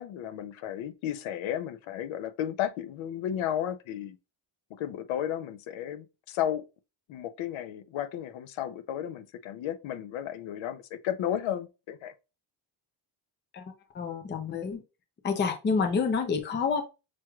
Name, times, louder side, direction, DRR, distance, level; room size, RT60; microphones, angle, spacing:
voice 1, 0.0-4.2 4.8-6.6 7.1-12.1, left 10 dB, 75° left, 0.7 m, -33 dB
voice 2, 13.9-14.8 15.2-16.8, left 5 dB, 25° left, 0.5 m, -28 dB
6.0 x 3.0 x 2.3 m
cardioid pair, 175°, 47 cm